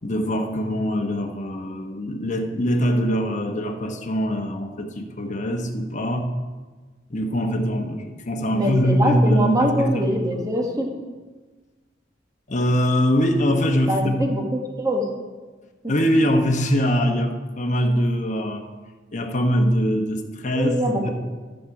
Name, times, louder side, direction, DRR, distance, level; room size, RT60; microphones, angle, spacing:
voice 1, 0.0-6.3 7.1-10.3 12.5-14.2 15.9-18.7 19.1-21.1, equal, 40° left, 4 dB, 1.0 m, -22 dB
voice 2, 8.5-10.9 13.9-14.4 14.8-15.1 20.5-21.0, equal, 20° right, 1 dB, 1.4 m, -23 dB
13.5 x 6.6 x 4.8 m, 1.3 s
head